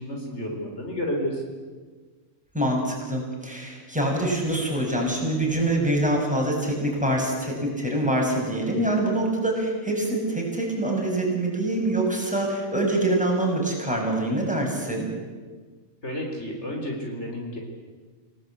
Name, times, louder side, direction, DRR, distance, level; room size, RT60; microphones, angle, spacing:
voice 1, 0.0-1.4 16.0-17.6, equal, 55° left, 1 dB, 4.3 m, -31 dB
voice 2, 2.5-15.1, right 1 dB, 5° right, -1 dB, 6.5 m, -25 dB
29.0 x 18.0 x 8.6 m, 1.5 s
omnidirectional pair, 1.4 m